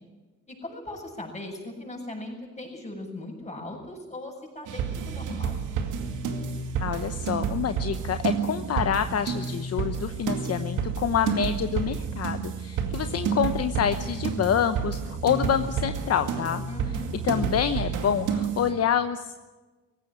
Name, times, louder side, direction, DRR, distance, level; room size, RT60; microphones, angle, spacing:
voice 1, 0.5-5.6 16.7-17.2, left 1 dB, 20° left, 1 dB, 7.6 m, -39 dB
sound 1, 4.7-18.7, right 6 dB, 85° right, 2.3 m, -30 dB
voice 2, 6.8-16.6 17.2-19.3, left 8 dB, 55° left, 9 dB, 1.0 m, -27 dB
18.0 x 16.0 x 9.9 m, 1.3 s
cardioid pair, 90°, 30 cm